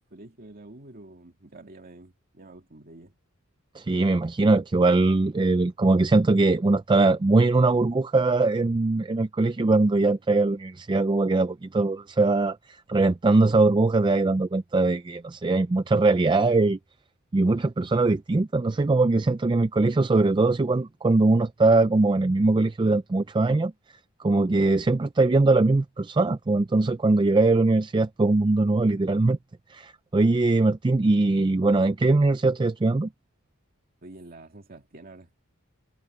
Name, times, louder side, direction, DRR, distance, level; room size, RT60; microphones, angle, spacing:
voice 1, 0.0-3.2 34.0-35.3, right 2 dB, 45° right, 2.3 m, -47 dB
voice 2, 3.8-16.8 17.3-23.7 24.2-29.4 29.7-33.1, right 2 dB, 20° right, 0.4 m, -21 dB
head